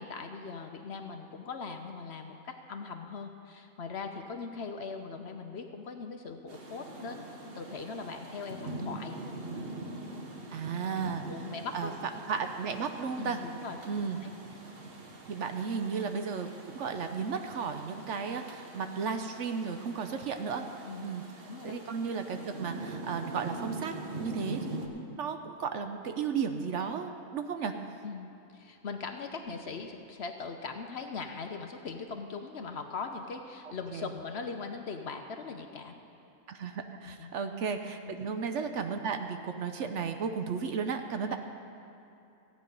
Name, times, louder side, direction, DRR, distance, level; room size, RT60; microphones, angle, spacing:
voice 1, 0.0-9.2 11.2-11.9 13.2-14.3 20.8-21.2 21.4-21.8 28.0-36.0 37.0-37.3 38.0-38.2 41.3-41.4, left 4 dB, 55° left, 5 dB, 0.9 m, -40 dB
Rain, 6.5-24.9, right 2 dB, 45° right, 1.3 m, -43 dB
voice 2, 10.5-11.2 11.7-11.9 12.3-13.4 13.8-14.2 15.3-20.7 21.0-21.2 21.6-23.9 24.2-27.7 33.6-34.1 36.5-41.4, right 6 dB, 65° right, 7 dB, 0.9 m, -34 dB
15.5 x 9.2 x 5.3 m, 2.8 s
omnidirectional pair, 1.5 m